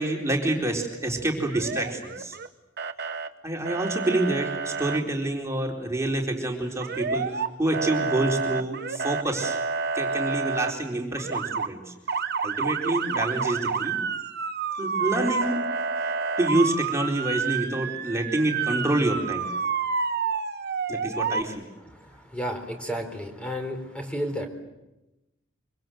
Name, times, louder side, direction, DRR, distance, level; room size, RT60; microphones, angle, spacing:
voice 1, 0.0-2.4 3.4-9.6 9.9-11.8 12.4-14.0 14.8-15.6 16.4-19.5 20.9-21.6, right 1 dB, 15° right, 0 dB, 4.0 m, -27 dB
Motor vehicle (road) / Siren, 1.5-2.5 2.8-3.3 3.7-5.0 6.8-7.5 7.7-10.7 11.2-11.7 12.1-21.4, right 5 dB, 55° right, 1.3 m, -29 dB
voice 2, 21.8-24.5, equal, 5° left, 4 dB, 4.2 m, -32 dB
25.5 x 25.5 x 7.8 m, 0.99 s
head